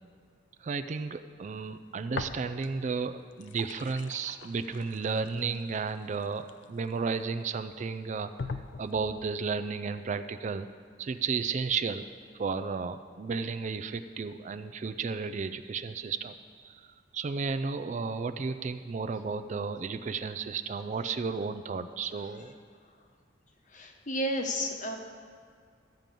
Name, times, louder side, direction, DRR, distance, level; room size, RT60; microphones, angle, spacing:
voice 1, 0.6-10.7 11.0-12.0 12.3-16.3 16.6-22.6, right 5 dB, 40° right, 10 dB, 0.4 m, -33 dB
sound 1, 2.1-2.9 3.2-7.2 7.8-7.9 8.4-9.3, left 4 dB, 75° left, 0.5 m, -41 dB
voice 2, 23.7-25.0, equal, 45° left, 4 dB, 1.1 m, -32 dB
13.0 x 5.3 x 7.5 m, 2.1 s
head